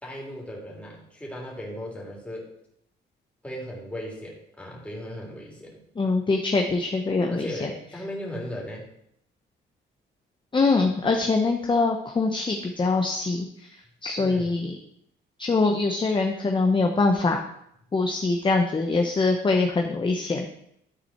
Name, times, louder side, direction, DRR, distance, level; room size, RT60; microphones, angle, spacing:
voice 1, 0.0-2.5 3.4-5.8 7.3-8.9 14.2-14.6, equal, 5° left, -3 dB, 3.1 m, -37 dB
voice 2, 6.0-7.7 10.5-13.5 14.0-14.8 15.4-17.4 17.9-20.5, left 3 dB, 25° left, 3 dB, 0.8 m, -23 dB
12.5 x 4.2 x 4.3 m, 0.74 s
cardioid pair, 90°, 20 cm